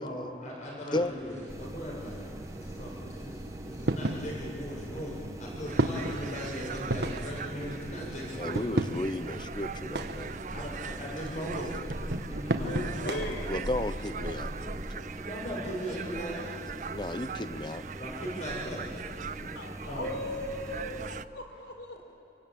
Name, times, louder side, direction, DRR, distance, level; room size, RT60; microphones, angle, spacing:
voice 1, 0.0-8.7 10.5-11.7 12.3-13.2 15.2-16.5 18.0-18.9 19.9-20.2, equal, 45° left, -3 dB, 6.5 m, -39 dB
sound 1, 0.9-14.9, right 1 dB, 70° right, 1.3 m, -36 dB
sound 2, 1.5-21.3, right 1 dB, 20° right, 1.0 m, -43 dB
sound 3, 5.6-21.2, right 7 dB, 45° right, 0.5 m, -42 dB
voice 2, 8.4-10.3 13.4-15.1 16.9-17.8 19.4-19.5, left 1 dB, 25° left, 11 dB, 0.8 m, -34 dB
voice 3, 12.7-13.5 19.5-22.0, left 1 dB, 90° left, 4 dB, 4.2 m, -38 dB
27.0 x 24.0 x 8.8 m, 3.0 s
head